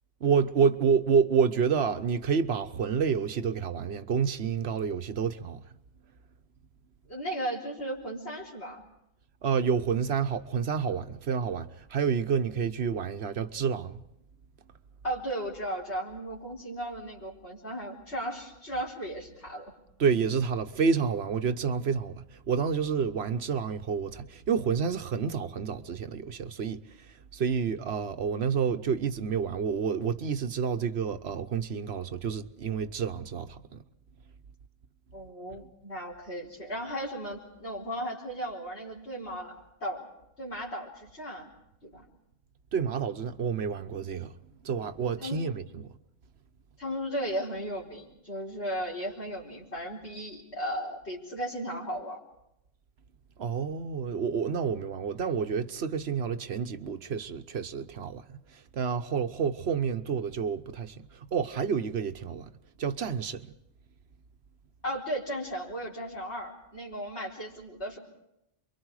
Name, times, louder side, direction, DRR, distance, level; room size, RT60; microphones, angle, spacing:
voice 1, 0.2-5.6 9.4-14.0 20.0-33.8 42.7-44.3 44.6-45.9 53.4-62.5 62.8-63.5, right 6 dB, 70° right, 1.2 m, -29 dB
voice 2, 7.1-8.8 15.0-19.7 35.1-40.1 40.4-41.5 41.8-42.0 45.2-45.5 46.8-52.2 64.8-68.0, equal, 85° left, 4.9 m, -36 dB
28.0 x 23.5 x 4.8 m
omnidirectional pair, 1.1 m